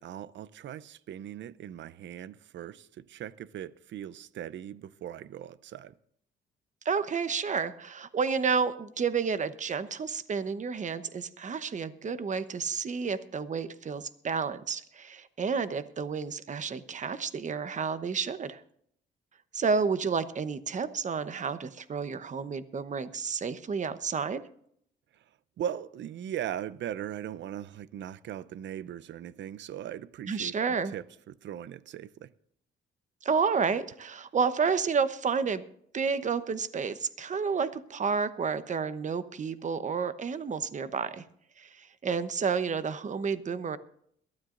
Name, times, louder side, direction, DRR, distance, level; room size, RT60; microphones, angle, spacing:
voice 1, 0.0-5.9 25.1-25.2 25.6-32.3, right 10 dB, 65° right, 0.6 m, -39 dB
voice 2, 6.8-18.6 19.5-24.4 30.3-30.9 33.2-35.6 35.9-41.2 41.6-43.8, right 5 dB, 40° right, 1.0 m, -30 dB
22.5 x 13.0 x 2.6 m
cardioid pair, 90°, 20 cm